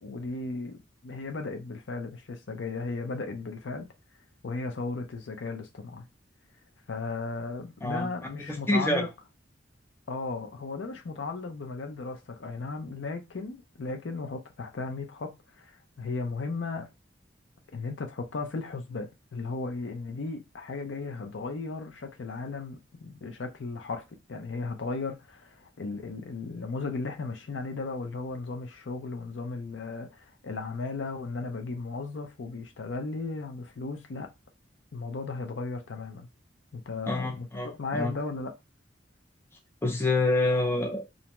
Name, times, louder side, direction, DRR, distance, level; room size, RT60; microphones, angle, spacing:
voice 1, 0.0-3.9 4.4-6.0 6.9-9.1 10.1-16.9 17.7-24.0 24.3-34.3 34.9-36.3 36.7-38.5, left 3 dB, 80° left, 0.5 m, -36 dB
voice 2, 8.5-9.0 37.1-38.1 39.8-41.1, left 2 dB, 15° left, 0.5 m, -27 dB
2.6 x 2.1 x 2.9 m
head